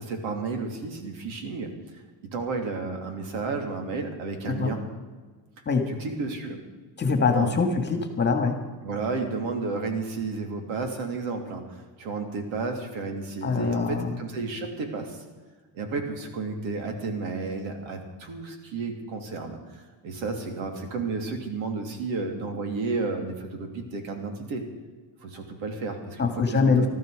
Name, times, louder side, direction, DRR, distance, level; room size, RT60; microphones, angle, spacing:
voice 1, 0.0-1.8 2.2-4.8 5.9-6.6 7.3-7.6 8.8-15.2 15.7-24.8 25.2-26.9, right 4 dB, 85° right, 4 dB, 3.1 m, -32 dB
voice 2, 7.0-8.6 13.4-14.2 26.2-26.9, left 4 dB, 25° left, 6 dB, 2.0 m, -23 dB
19.5 x 13.5 x 5.0 m, 1.4 s
cardioid pair, 140°, 45 cm